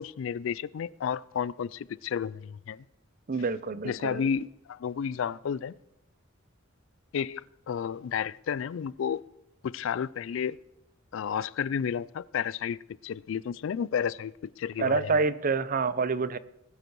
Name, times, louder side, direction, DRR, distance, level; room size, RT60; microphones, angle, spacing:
voice 1, 0.0-2.8 3.8-5.7 7.1-9.2 9.6-10.6 11.1-15.1, left 7 dB, 70° left, 0.3 m, -32 dB
voice 2, 3.3-4.2 14.8-16.4, right 4 dB, 45° right, 0.5 m, -27 dB
19.5 x 8.0 x 4.6 m
head